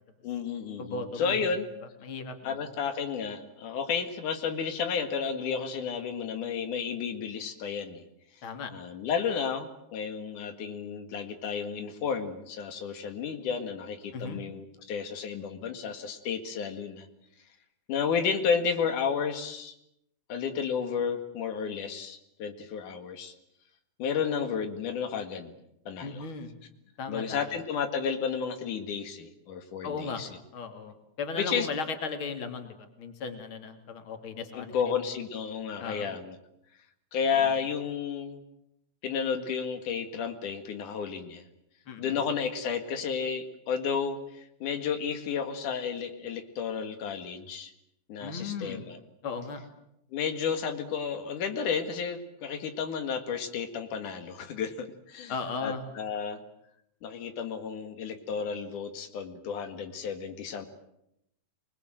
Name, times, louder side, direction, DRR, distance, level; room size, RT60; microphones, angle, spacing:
voice 1, 0.2-1.7 2.4-8.0 8.7-17.1 17.9-19.7 20.3-23.3 24.0-25.5 25.9-26.2 27.1-30.3 31.4-31.7 34.5-36.4 37.1-38.4 39.0-41.4 42.0-47.7 48.1-49.0 50.1-55.3 55.6-56.4 57.0-60.7, left 6 dB, 90° left, 7 dB, 3.4 m, -32 dB
voice 2, 0.8-1.5 2.0-2.6 8.4-8.7 14.1-14.4 26.0-26.6 27.0-27.6 29.8-30.2 30.5-34.9 35.8-36.1 41.9-42.2 48.2-48.8 49.2-49.6 55.3-55.8, left 4 dB, 45° left, 6 dB, 3.2 m, -36 dB
27.0 x 21.0 x 9.1 m, 0.81 s
omnidirectional pair, 3.4 m